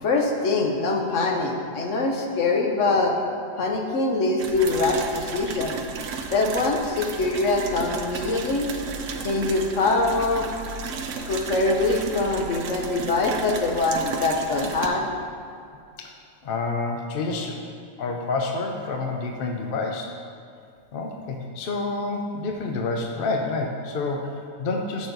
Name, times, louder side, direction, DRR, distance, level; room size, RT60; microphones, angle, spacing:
voice 1, 0.0-3.1 3.6-5.8 6.3-8.7 9.2-10.5 11.3-15.1, left 3 dB, 70° left, 1 dB, 1.1 m, -23 dB
sound 1, 4.4-14.9, right 5 dB, 70° right, 1.0 m, -34 dB
voice 2, 16.4-17.6 18.0-20.1 20.9-25.1, left 3 dB, 50° left, 2 dB, 0.8 m, -28 dB
8.0 x 6.8 x 3.9 m, 2.3 s
omnidirectional pair, 1.4 m